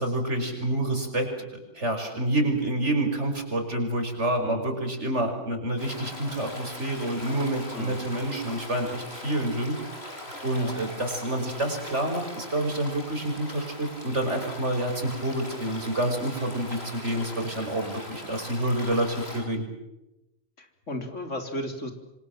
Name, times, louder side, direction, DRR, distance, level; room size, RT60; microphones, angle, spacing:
voice 1, 0.0-10.1 10.4-19.7, right 1 dB, 70° right, 5 dB, 6.0 m, -28 dB
Stream, 5.8-19.4, left 1 dB, 60° left, 7.3 m, -41 dB
voice 2, 20.6-21.9, left 1 dB, 90° left, 5 dB, 4.2 m, -35 dB
26.5 x 25.5 x 7.5 m, 0.93 s
omnidirectional pair, 1.2 m